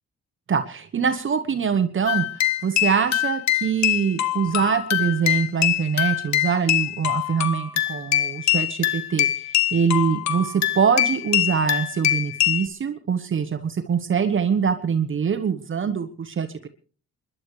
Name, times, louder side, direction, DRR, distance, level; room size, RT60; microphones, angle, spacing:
voice 1, 0.5-16.7, right 6 dB, 40° right, 9 dB, 1.2 m, -24 dB
sound 1, 2.1-12.6, left 13 dB, 65° left, 1.3 m, -24 dB
28.5 x 11.5 x 3.2 m, 0.39 s
cardioid pair, 90°, 30 cm